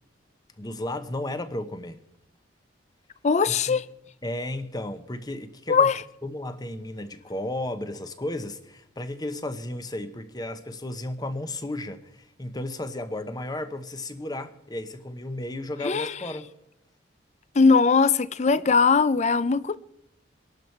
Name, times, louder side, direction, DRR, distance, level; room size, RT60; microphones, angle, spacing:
voice 1, 0.6-2.0 3.5-3.8 4.2-5.9 6.2-16.5, left 1 dB, 20° left, 0.9 m, -34 dB
voice 2, 3.2-3.8 5.7-6.0 15.8-16.1 17.6-19.8, left 5 dB, 35° left, 0.4 m, -20 dB
23.0 x 12.0 x 4.6 m
head